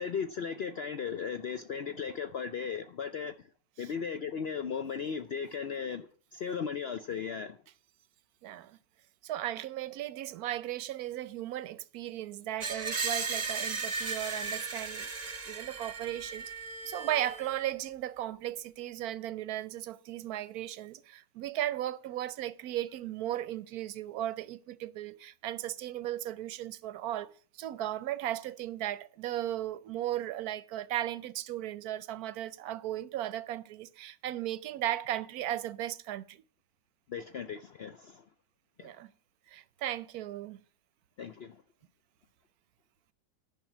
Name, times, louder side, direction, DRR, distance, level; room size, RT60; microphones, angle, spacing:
voice 1, 0.0-3.5 3.8-7.6 37.1-38.2 38.8-38.9 41.2-41.6, left 6 dB, 85° left, 0.5 m, -36 dB
voice 2, 8.4-8.8 9.2-15.1 15.5-16.5 16.8-36.4 38.8-39.1 39.5-40.6, right 13 dB, 70° right, 1.0 m, -36 dB
Screech, 12.6-17.6, right 4 dB, 30° right, 0.9 m, -36 dB
10.5 x 6.1 x 7.3 m
omnidirectional pair, 1.8 m